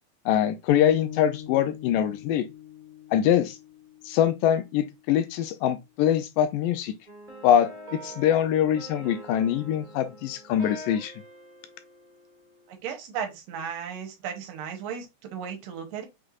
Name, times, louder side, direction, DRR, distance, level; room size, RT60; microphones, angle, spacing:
voice 1, 0.3-2.5 3.1-3.6 4.1-6.9 7.4-11.1, left 10 dB, 80° left, 2.0 m, -23 dB
sound 1, 0.7-4.8, left 10 dB, 65° left, 2.4 m, -41 dB
sound 2, 7.1-12.7, right 1 dB, 20° right, 1.3 m, -44 dB
voice 2, 12.7-16.1, right 7 dB, 80° right, 2.6 m, -35 dB
6.1 x 3.2 x 2.4 m
omnidirectional pair, 4.1 m